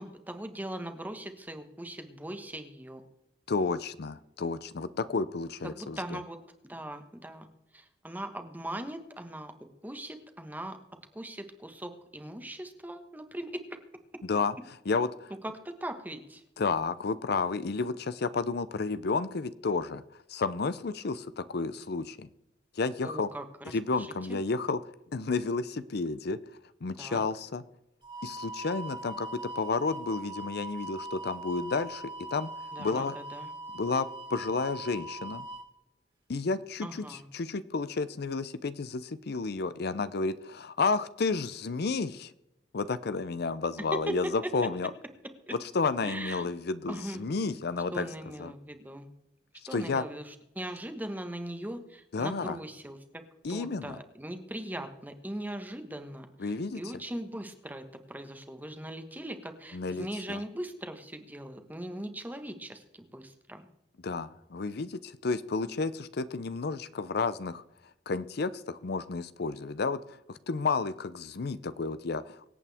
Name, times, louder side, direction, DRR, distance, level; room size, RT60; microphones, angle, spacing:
voice 1, 0.0-3.0 5.6-6.4 6.6-7.5 7.7-9.5 9.8-10.8 11.1-13.6 15.4-16.4 23.0-24.4 27.0-27.2 32.7-33.5 36.8-37.3 44.1-44.2 45.5-45.6 46.0-46.5 46.9-47.2 47.9-49.1 49.7-53.0 53.5-63.7, right 1 dB, 10° right, 7 dB, 1.4 m, -40 dB
voice 2, 3.5-6.2 14.3-14.5 14.9-15.3 16.6-22.3 22.7-23.3 23.7-24.8 25.1-26.4 26.8-27.6 28.2-32.5 32.8-33.2 33.7-35.5 36.3-42.3 42.7-44.9 45.7-48.1 48.4-48.5 49.7-50.1 52.1-52.6 53.4-54.0 56.4-56.8 59.7-60.4 64.0-67.6 68.1-72.4, left 4 dB, 60° left, 14 dB, 0.6 m, -31 dB
sound 1, 28.0-35.6, right 2 dB, 30° right, 2.6 m, -41 dB
24.5 x 8.5 x 3.5 m, 0.90 s
head